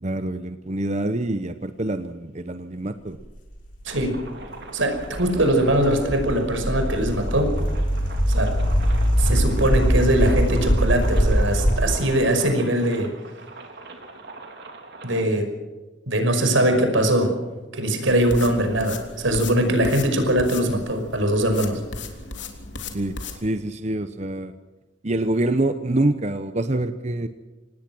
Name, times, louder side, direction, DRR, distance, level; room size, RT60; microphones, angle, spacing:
voice 1, 0.0-3.2 22.9-24.5 25.0-27.3, right 1 dB, 35° right, 10 dB, 0.9 m, -26 dB
sound 1, 3.2-11.8, equal, 45° left, 5.8 m, -23 dB
sound 2, 3.8-15.2, right 3 dB, 60° right, 3.6 m, -41 dB
voice 2, 3.9-4.2 4.7-7.6 8.3-8.5 9.2-13.1 15.0-15.5 16.1-17.3 17.7-21.8, right 1 dB, 85° right, 6 dB, 5.7 m, -21 dB
sound 3, 18.1-23.4, left 3 dB, 70° left, 3.4 m, -36 dB
26.5 x 19.5 x 6.2 m, 1.2 s
head